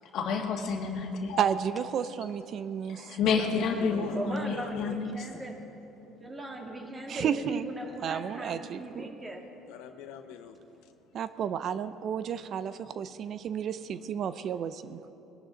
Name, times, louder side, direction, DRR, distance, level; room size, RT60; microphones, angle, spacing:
voice 1, 0.1-1.4 2.9-5.3, left 5 dB, 60° left, 2 dB, 1.7 m, -30 dB
voice 2, 1.4-3.2 7.1-7.7 8.0-9.1 11.1-15.1, right 8 dB, 55° right, 13 dB, 0.5 m, -32 dB
voice 3, 3.2-5.0 9.7-10.9, left 8 dB, 80° left, 8 dB, 0.8 m, -42 dB
voice 4, 4.1-5.6 6.0-9.4, right 2 dB, 20° right, 1 dB, 2.0 m, -38 dB
20.5 x 11.5 x 3.9 m, 2.9 s
supercardioid pair, 95°, 0 cm